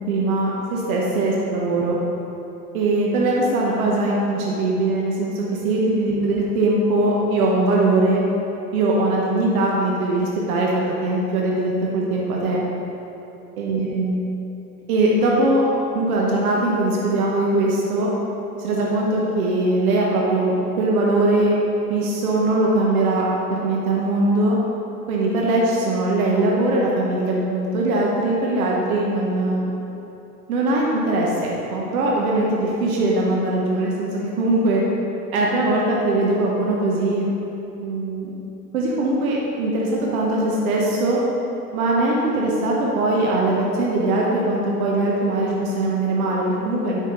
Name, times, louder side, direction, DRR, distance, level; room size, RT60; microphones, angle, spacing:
voice 1, 0.1-2.0 2.7-8.2 8.7-12.6 13.6-14.2 14.9-15.6 15.9-18.1 18.6-21.5 21.9-24.6 25.1-29.7 30.5-34.8 35.3-37.3 37.8-38.3 38.7-41.2 41.7-47.0, right 2 dB, 65° right, -3 dB, 1.3 m, -21 dB
9.1 x 5.3 x 3.9 m, 2.9 s
hypercardioid pair, 85°, 47 cm